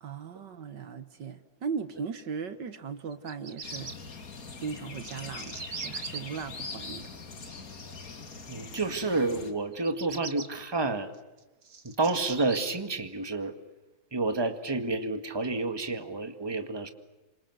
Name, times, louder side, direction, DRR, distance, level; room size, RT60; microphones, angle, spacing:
voice 1, 0.0-3.9 4.6-7.1, right 6 dB, 65° right, 11 dB, 1.9 m, -38 dB
Bird vocalization bird call bird song, 3.1-3.9 4.7-6.2 9.7-10.5 11.1-12.6, right 5 dB, 50° right, 2.2 m, -40 dB
sound 1, 3.6-9.5, left 4 dB, 45° left, 2.6 m, -42 dB
voice 2, 8.5-11.1 11.8-13.5 14.1-16.9, right 3 dB, 15° right, 8 dB, 1.8 m, -29 dB
27.5 x 25.5 x 7.9 m, 1.1 s
omnidirectional pair, 2.1 m